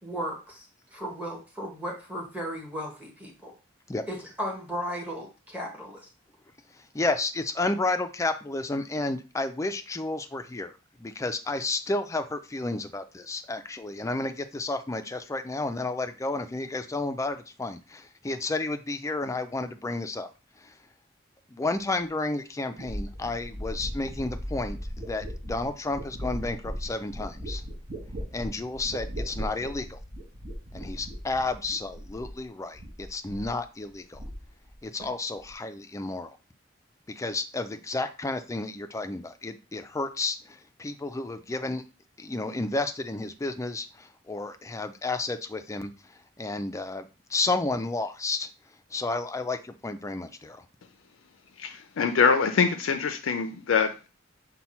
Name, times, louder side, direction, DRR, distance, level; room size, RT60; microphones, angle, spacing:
voice 1, 0.0-3.5 4.1-6.1, equal, 10° right, -1 dB, 1.1 m, -36 dB
voice 2, 6.9-10.7 11.0-20.3 20.6-20.7 21.5-27.6 28.3-30.0 30.7-34.2 34.8-36.4 37.1-41.8 42.2-48.5 48.9-50.6, left 2 dB, 15° left, 9 dB, 0.4 m, -31 dB
sound 1, 22.8-32.5 32.7-33.6 33.9-34.7 35.0-35.5, equal, 40° right, 1.1 m, -38 dB
voice 3, 51.6-54.1, left 5 dB, 85° left, 7 dB, 0.4 m, -24 dB
5.6 x 2.2 x 4.2 m, 0.32 s
head